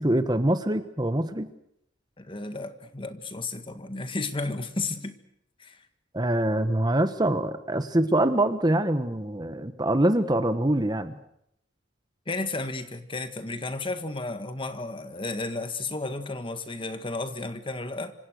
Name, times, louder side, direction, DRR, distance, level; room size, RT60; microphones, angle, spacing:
voice 1, 0.0-1.5 6.1-11.1, right 1 dB, 20° right, 10 dB, 1.3 m, -24 dB
voice 2, 2.2-5.2 5.6-5.8 12.3-18.1, left 3 dB, 30° left, 9 dB, 1.8 m, -33 dB
26.5 x 25.5 x 6.6 m, 0.75 s
head